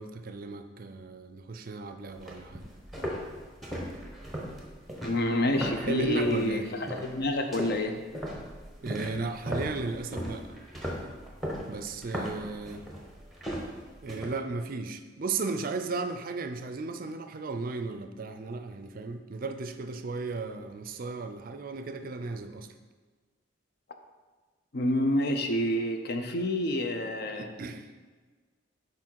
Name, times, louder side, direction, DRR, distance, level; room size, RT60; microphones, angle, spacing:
voice 1, 0.0-2.7 5.8-6.7 8.8-10.4 11.7-12.8 14.0-22.7 27.3-27.9, right 3 dB, 45° right, 7 dB, 0.4 m, -35 dB
sound 1, 2.1-6.5 6.9-7.2 7.5-14.3, equal, ahead, 0.9 m, -37 dB
voice 2, 5.0-7.9 24.7-27.5, left 1 dB, 55° left, 5 dB, 0.6 m, -28 dB
6.1 x 4.7 x 4.5 m, 1.4 s
head